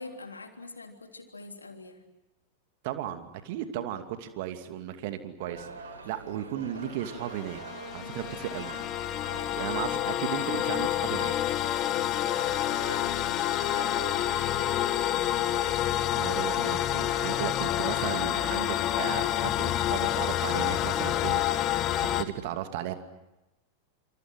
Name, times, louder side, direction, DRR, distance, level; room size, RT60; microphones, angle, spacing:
voice 1, 0.0-2.1 8.0-8.3 9.2-9.6 12.6-15.4, left 3 dB, 80° left, 5 dB, 3.3 m, -45 dB
voice 2, 2.8-7.6 7.9-8.8 9.6-11.3 16.2-21.4 21.7-22.9, right 11 dB, 50° right, 8 dB, 2.6 m, -35 dB
sound 1, 5.4-17.5, right 4 dB, 75° right, 4.4 m, -44 dB
sound 2, 7.0-22.2, left 13 dB, 35° left, 1.5 m, -28 dB
28.0 x 28.0 x 6.3 m, 0.96 s
figure-of-eight pair, 90°, 0 cm